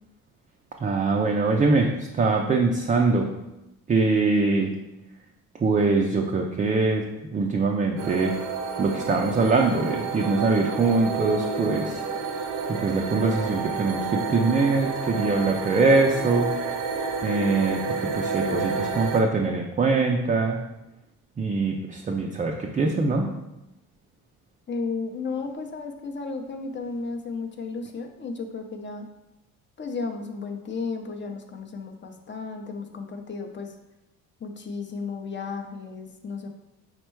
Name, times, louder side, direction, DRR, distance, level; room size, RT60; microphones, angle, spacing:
voice 1, 0.8-3.3 3.9-4.7 5.6-7.1 7.3-8.4 8.8-12.4 12.7-16.5 17.2-20.6 21.4-23.3, right 3 dB, 20° right, 1 dB, 0.4 m, -23 dB
sound 1, 8.0-19.2, right 4 dB, 55° right, 0.6 m, -30 dB
voice 2, 24.7-29.1 29.8-33.7 34.4-36.5, left 4 dB, 30° left, 5 dB, 0.5 m, -33 dB
4.4 x 2.2 x 4.4 m, 0.93 s
cardioid pair, 80°, 36 cm